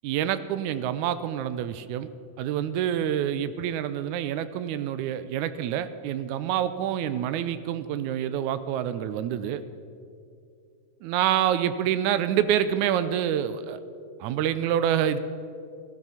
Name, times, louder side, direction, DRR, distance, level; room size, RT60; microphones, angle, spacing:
voice 1, 0.0-2.1 2.4-9.6 11.0-13.8 14.2-15.2, right 10 dB, 80° right, 13 dB, 1.9 m, -27 dB
15.5 x 14.5 x 5.8 m, 2.4 s
omnidirectional pair, 3.8 m